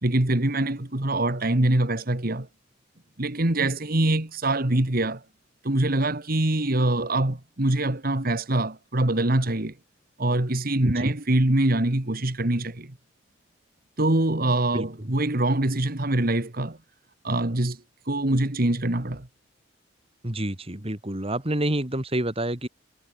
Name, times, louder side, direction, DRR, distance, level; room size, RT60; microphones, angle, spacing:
voice 1, 0.0-2.5 3.2-5.2 5.6-9.7 10.2-12.9 14.0-16.8 17.2-19.3, right 1 dB, 50° right, 2.0 m, -24 dB
voice 2, 20.2-22.7, right 1 dB, 30° right, 2.7 m, -28 dB
head